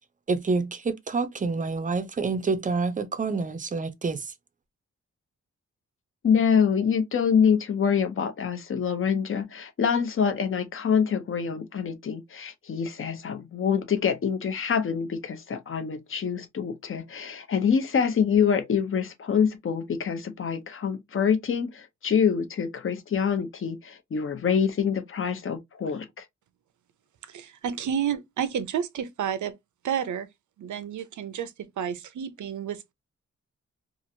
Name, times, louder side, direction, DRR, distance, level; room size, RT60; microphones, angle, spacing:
voice 1, 0.3-4.3, right 4 dB, 30° right, 0.5 m, -28 dB
voice 2, 6.2-26.2, left 7 dB, 45° left, 0.6 m, -25 dB
voice 3, 27.3-29.5 29.8-30.3 30.6-32.9, right 8 dB, 90° right, 0.6 m, -30 dB
3.0 x 2.4 x 2.6 m
wide cardioid pair, 135°, 29 cm